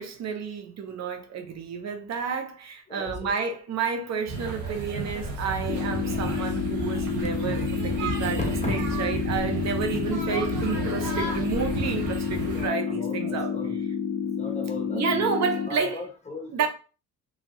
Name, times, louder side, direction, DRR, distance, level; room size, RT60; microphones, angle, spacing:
voice 1, 0.0-13.5 14.9-16.0 16.5-16.7, right 6 dB, 60° right, 0.7 m, -30 dB
voice 2, 2.9-3.3 8.4-8.9 12.5-13.8 14.4-16.7, left 2 dB, 20° left, 0.9 m, -37 dB
sound 1, 4.3-12.7, right 3 dB, 85° right, 1.1 m, -32 dB
sound 2, 5.7-15.7, left 7 dB, 45° left, 0.5 m, -30 dB
2.8 x 2.7 x 2.9 m
cardioid pair, 90°, 30 cm